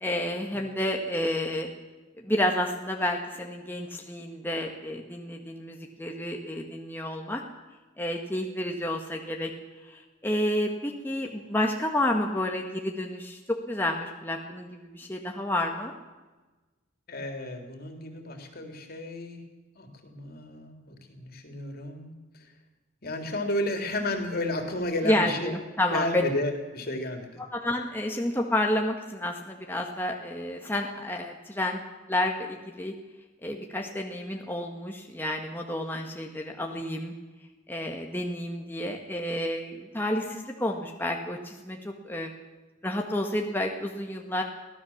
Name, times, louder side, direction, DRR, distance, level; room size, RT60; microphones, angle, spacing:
voice 1, 0.0-1.7 2.2-7.4 8.0-9.5 9.8-15.9 25.0-26.0 27.5-31.8 32.1-32.9 33.4-37.1 37.7-42.3 42.8-44.4, left 1 dB, 10° left, 1 dB, 1.7 m, -30 dB
voice 2, 17.1-19.4 19.8-22.5 23.0-25.6 25.9-27.4, left 1 dB, 50° left, 4 dB, 3.5 m, -32 dB
23.5 x 17.0 x 7.3 m, 1.2 s
head